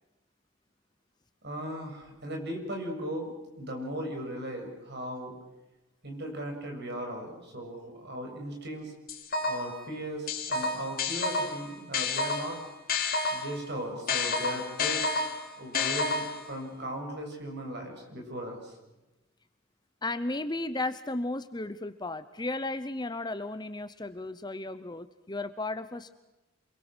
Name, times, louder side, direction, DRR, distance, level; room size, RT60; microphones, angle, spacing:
voice 1, 1.4-3.3 3.6-5.4 6.0-8.9 9.5-12.6 13.3-15.2 15.6-18.8, right 1 dB, 50° right, 2 dB, 7.0 m, -37 dB
sound 1, 9.1-9.8 10.3-13.6 14.1-16.5, left 3 dB, 40° left, 3.3 m, -30 dB
voice 2, 20.0-26.1, left 2 dB, 20° left, 12 dB, 0.8 m, -34 dB
28.0 x 22.5 x 6.3 m, 1.1 s
head